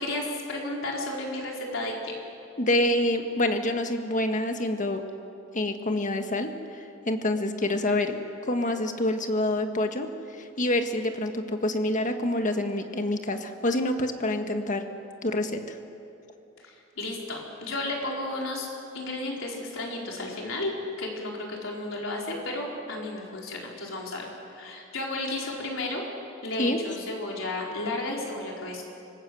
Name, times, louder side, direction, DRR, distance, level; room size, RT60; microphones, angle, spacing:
voice 1, 0.0-2.1 16.6-18.7 18.9-20.7 21.0-26.0 26.4-28.8, left 2 dB, 70° left, -2 dB, 4.6 m, -33 dB
voice 2, 2.6-5.0 5.5-8.2 8.5-10.1 10.4-14.9 15.2-15.6 26.6-26.8, left 1 dB, 40° left, 6 dB, 1.6 m, -27 dB
26.0 x 19.5 x 7.8 m, 2.7 s
head